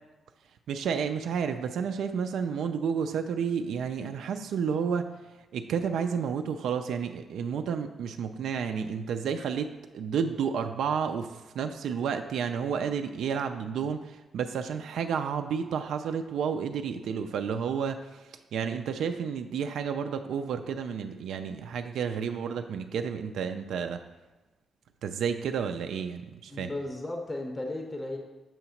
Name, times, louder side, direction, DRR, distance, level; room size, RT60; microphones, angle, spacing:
voice 1, 0.7-5.1 5.5-9.7 9.9-24.0 25.0-26.7, right 7 dB, 90° right, 7 dB, 0.3 m, -31 dB
voice 2, 26.5-28.2, left 2 dB, 15° left, 2 dB, 0.6 m, -35 dB
7.0 x 2.9 x 5.6 m, 1.1 s
wide cardioid pair, 160°, 0 cm